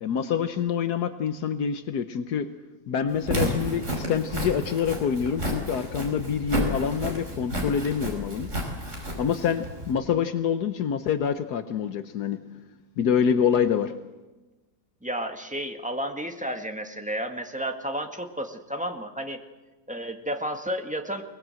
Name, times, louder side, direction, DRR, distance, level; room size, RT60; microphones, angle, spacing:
voice 1, 0.0-2.5 2.9-8.5 9.2-12.4 13.0-13.9, left 7 dB, 75° left, 9 dB, 1.5 m, -26 dB
Walk footsteps, 3.1-9.9, equal, 45° right, 5.6 m, -31 dB
voice 2, 15.0-19.4 19.9-21.2, equal, 5° right, 4 dB, 1.7 m, -32 dB
23.0 x 20.5 x 7.7 m, 1.2 s
omnidirectional pair, 1.8 m